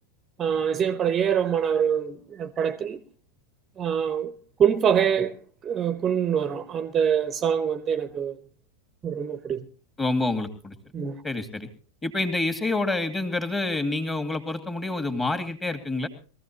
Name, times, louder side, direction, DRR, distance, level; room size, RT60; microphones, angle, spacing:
voice 1, 0.4-3.0 3.8-4.3 4.6-5.4 5.6-8.4 9.0-9.6 10.9-11.2, right 8 dB, 25° right, 0.9 m, -24 dB
voice 2, 10.0-10.7 11.2-11.7 12.0-16.1, left 2 dB, 15° left, 2.3 m, -27 dB
22.0 x 15.0 x 3.0 m
figure-of-eight pair, 90°, 0 cm